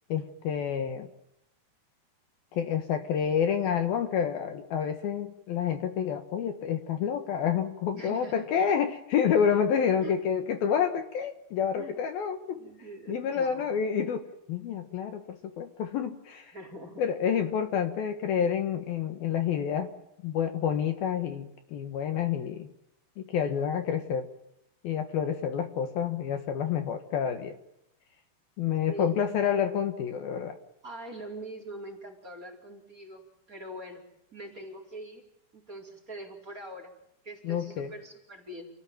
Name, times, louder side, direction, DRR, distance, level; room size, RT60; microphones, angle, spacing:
voice 1, 0.1-1.1 2.5-12.6 13.1-16.5 17.0-19.9 20.2-22.7 23.2-24.3 24.8-27.6 28.6-30.6 37.4-37.9, left 8 dB, 65° left, 7 dB, 3.0 m, -28 dB
voice 2, 7.9-8.4 10.0-10.1 11.7-12.0 12.6-13.8 16.5-17.0 28.9-29.1 30.8-34.0 34.3-35.2 35.5-36.9 37.2-38.7, right 1 dB, 20° right, 5 dB, 4.5 m, -43 dB
29.5 x 17.5 x 9.1 m, 0.81 s
omnidirectional pair, 5.0 m